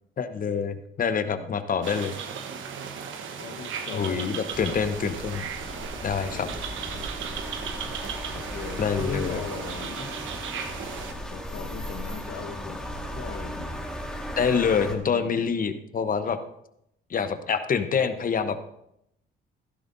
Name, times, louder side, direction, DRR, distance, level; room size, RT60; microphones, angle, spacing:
voice 1, 0.2-2.1 3.9-5.4 6.0-6.5 8.8-9.4 14.4-16.4 17.1-18.6, left 6 dB, 45° left, 10 dB, 1.0 m, -26 dB
sound 1, 1.8-11.1, right 6 dB, 75° right, 1.1 m, -36 dB
voice 2, 3.4-4.7 6.2-6.6 8.3-10.1 11.3-12.8 13.1-13.8 14.9-15.5, left 5 dB, 85° left, 4 dB, 1.3 m, -38 dB
sound 2, 4.5-14.9, equal, 5° left, 1.7 m, -37 dB
15.0 x 12.0 x 2.7 m, 0.78 s
cardioid pair, 90°, 20 cm